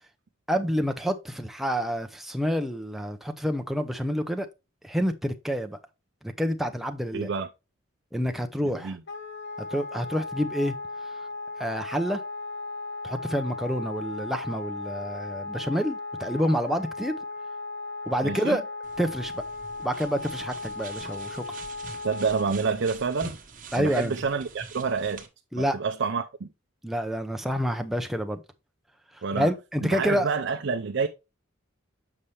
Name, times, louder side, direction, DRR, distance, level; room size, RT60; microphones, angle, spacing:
voice 1, 0.5-4.5 4.8-5.8 6.2-7.3 8.1-9.0 9.6-10.7 11.6-12.2 13.0-17.2 18.1-18.6 19.0-19.4 19.8-21.4 23.7-24.1 25.5-25.8 26.8-28.4 29.4-30.3, equal, ahead, 0.6 m, -28 dB
voice 2, 7.1-7.5 8.6-9.0 18.2-18.6 22.0-23.4 23.8-25.2 25.6-26.5 29.2-29.5 29.8-31.1, right 5 dB, 60° right, 0.5 m, -28 dB
Wind instrument woodwind instrument, 9.1-22.6, left 3 dB, 60° left, 0.9 m, -36 dB
sound 1, 18.8-25.3, right 4 dB, 45° right, 1.3 m, -44 dB
7.1 x 5.5 x 3.2 m
head